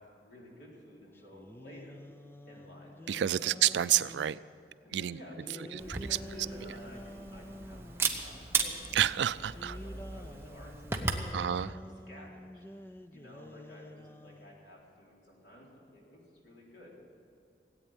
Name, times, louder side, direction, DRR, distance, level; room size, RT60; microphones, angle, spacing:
voice 1, 0.0-1.9 2.4-3.5 4.8-9.0 9.3-11.8 12.1-17.0, left 1 dB, 90° left, -3 dB, 4.0 m, -52 dB
sound 1, 1.1-4.4 5.3-8.2 9.4-14.6, left 1 dB, 15° left, 0.4 m, -49 dB
voice 2, 3.1-4.4 4.9-5.2 5.7-6.0 8.9-9.8 11.3-11.8, right 11 dB, 85° right, 17 dB, 0.4 m, -29 dB
Camera, 5.8-11.3, right 4 dB, 15° right, 0.8 m, -36 dB
17.0 x 8.7 x 9.0 m, 2.5 s
head